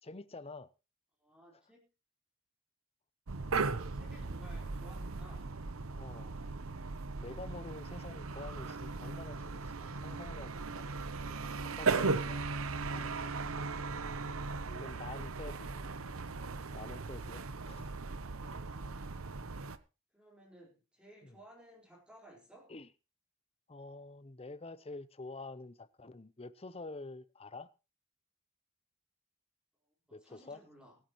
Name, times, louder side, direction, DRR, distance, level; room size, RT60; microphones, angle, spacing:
voice 1, 0.0-0.7 1.5-1.6 6.0-6.4 7.2-10.9 11.6-12.4 12.8-13.5 14.7-15.7 16.7-17.9 21.2-21.4 22.7-22.9 23.7-27.7 30.1-30.6, left 3 dB, 25° left, 0.7 m, -48 dB
voice 2, 1.2-1.9 3.4-5.8 15.6-15.7 20.1-22.7 30.1-31.0, right 1 dB, 5° right, 4.5 m, -58 dB
sound 1, 3.3-19.8, right 4 dB, 70° right, 0.9 m, -37 dB
23.5 x 9.3 x 3.1 m
head